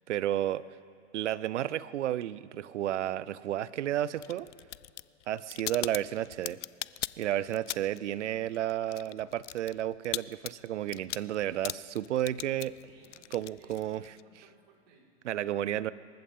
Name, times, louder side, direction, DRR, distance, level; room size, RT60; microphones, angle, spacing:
voice 1, 0.1-0.6 1.1-4.5 5.3-6.6 7.2-12.8 13.3-14.0 15.2-15.9, right 12 dB, 80° right, 19 dB, 0.6 m, -32 dB
sound 1, 4.2-8.1 8.4-14.2, left 14 dB, 80° left, 0.5 m, -40 dB
voice 2, 12.8-15.2, right 4 dB, 55° right, -3 dB, 5.0 m, -61 dB
26.5 x 14.5 x 3.7 m, 2.5 s
hypercardioid pair, 120°, 35 cm